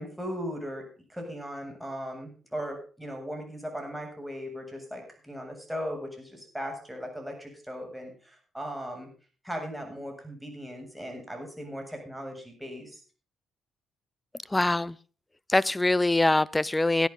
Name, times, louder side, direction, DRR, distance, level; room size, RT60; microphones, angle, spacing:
voice 1, 0.0-9.1 9.4-13.0, equal, 5° right, 7.6 m, -38 dB
voice 2, 14.5-14.9 15.5-17.1, left 2 dB, 15° left, 0.7 m, -23 dB
17.5 x 10.5 x 4.0 m
hypercardioid pair, 50°, 0 cm